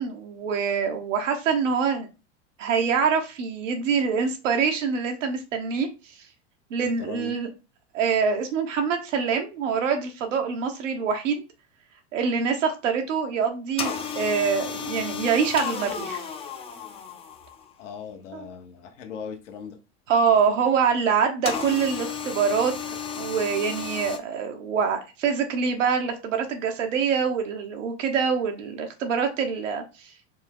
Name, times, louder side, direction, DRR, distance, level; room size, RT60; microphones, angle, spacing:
voice 1, 0.0-2.1 2.6-5.9 6.7-7.5 7.9-11.4 12.1-16.2 18.3-18.5 20.1-22.7 23.1-29.8, right 6 dB, 90° right, 1.2 m, -25 dB
voice 2, 6.8-7.3 17.8-19.8, left 6 dB, 75° left, 1.2 m, -39 dB
sound 1, 13.8-17.7 21.4-24.2, left 7 dB, 15° left, 0.4 m, -33 dB
4.5 x 2.2 x 3.7 m
supercardioid pair, 125°, 36 cm